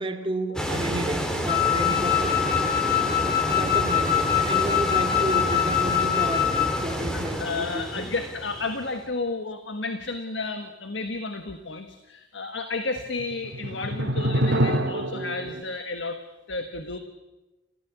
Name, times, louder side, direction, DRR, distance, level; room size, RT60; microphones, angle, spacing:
voice 1, 0.0-2.8 3.5-8.1, right 1 dB, 30° right, 4 dB, 2.2 m, -32 dB
sound 1, 0.5-9.0, equal, 5° left, 3.0 m, -29 dB
Wind instrument woodwind instrument, 1.5-6.8, left 11 dB, 55° left, 2.0 m, -24 dB
sound 2, 3.5-5.2 5.6-5.7 13.0-15.6, right 1 dB, 65° right, 2.3 m, -28 dB
voice 2, 7.1-16.2 16.5-17.0, left 3 dB, 75° left, 7 dB, 1.5 m, -32 dB
29.0 x 15.0 x 8.3 m, 1.1 s
head